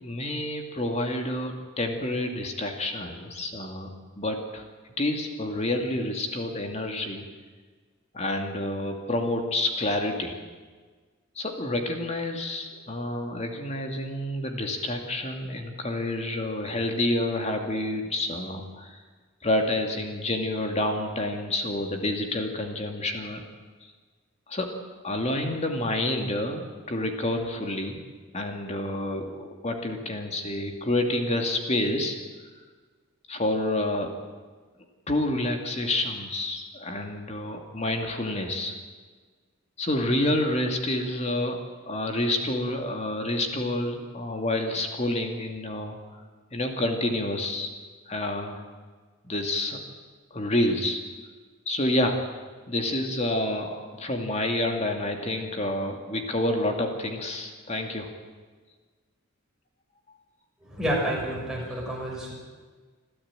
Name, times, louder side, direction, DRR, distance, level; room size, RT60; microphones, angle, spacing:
voice 1, 0.0-3.9 4.2-4.6 5.0-7.2 8.1-10.4 11.4-19.0 19.4-23.4 24.5-24.7 25.0-28.0 28.3-32.2 33.3-34.1 35.1-38.7 39.8-41.6 41.9-46.0 46.5-47.7 48.1-48.6 49.2-49.8 50.3-51.0 51.7-52.2 52.7-58.1, left 1 dB, 30° left, 4 dB, 2.5 m, -28 dB
voice 2, 60.6-62.3, equal, 5° right, -3 dB, 6.2 m, -29 dB
26.5 x 13.5 x 9.0 m, 1.4 s
head